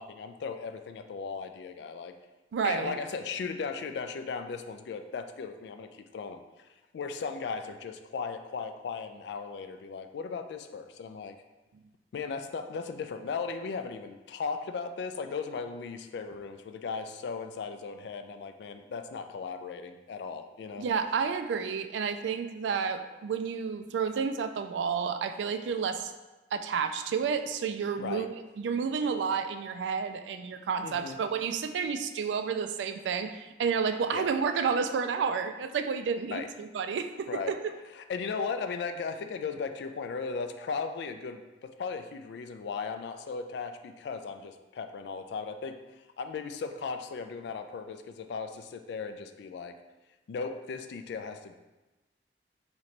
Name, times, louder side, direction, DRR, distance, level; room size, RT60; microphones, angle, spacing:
voice 1, 0.0-2.2 2.6-11.4 12.1-20.9 28.0-28.3 30.8-31.2 34.1-34.3 36.3-36.5 37.3-37.5 37.9-45.8 46.2-49.8 50.3-51.5, left 5 dB, 70° left, 8 dB, 0.3 m, -37 dB
voice 2, 2.5-3.0 20.8-26.1 26.5-28.3 28.6-37.6, right 6 dB, 85° right, 8 dB, 0.3 m, -30 dB
3.1 x 2.9 x 4.1 m, 1.1 s
head